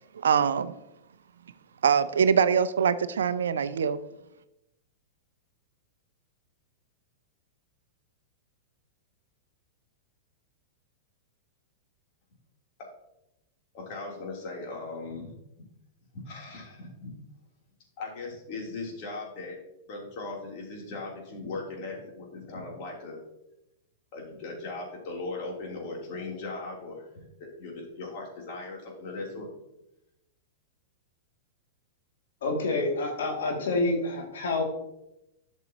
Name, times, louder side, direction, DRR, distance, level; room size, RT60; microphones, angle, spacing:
voice 1, 0.2-0.7 1.8-4.0, right 7 dB, 80° right, 14 dB, 0.5 m, -23 dB
voice 2, 13.7-15.3 16.1-17.1 18.0-19.6 19.9-23.2 24.1-29.5, left 3 dB, 50° left, -2 dB, 3.3 m, -38 dB
voice 3, 32.4-34.6, left 2 dB, 75° left, 0 dB, 2.4 m, -28 dB
11.5 x 6.3 x 2.9 m, 0.88 s
hypercardioid pair, 105°, 0 cm